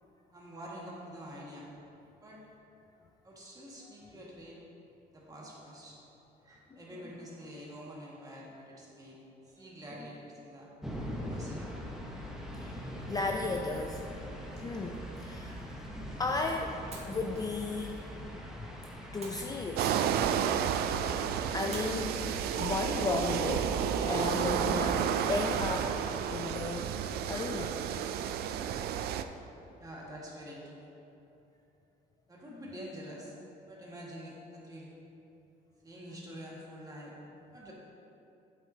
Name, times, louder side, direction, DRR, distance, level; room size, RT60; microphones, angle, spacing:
voice 1, 0.3-1.7 2.2-2.4 3.2-4.6 5.1-6.0 6.4-9.2 9.4-10.7 11.2-11.8 14.5-14.6 29.8-30.9 32.3-33.4 33.7-34.9 35.8-37.2 37.5-37.7, equal, 20° right, -4 dB, 1.7 m, -47 dB
sound 1, 10.8-26.2, equal, 5° right, 0.9 m, -42 dB
voice 2, 12.6-14.0 14.6-15.6 16.2-18.0 18.3-18.8 19.1-19.9 21.5-22.1 22.6-26.0 26.3-27.8, left 3 dB, 20° left, 2 dB, 0.4 m, -35 dB
sound 2, 14.1-16.4 16.9-18.5 19.2-20.6 21.7-23.1, right 3 dB, 40° right, 1.6 m, -53 dB
sound 3, 19.8-29.2, right 9 dB, 70° right, 0.4 m, -31 dB
8.5 x 7.4 x 2.8 m, 2.8 s
cardioid pair, 110°, 17 cm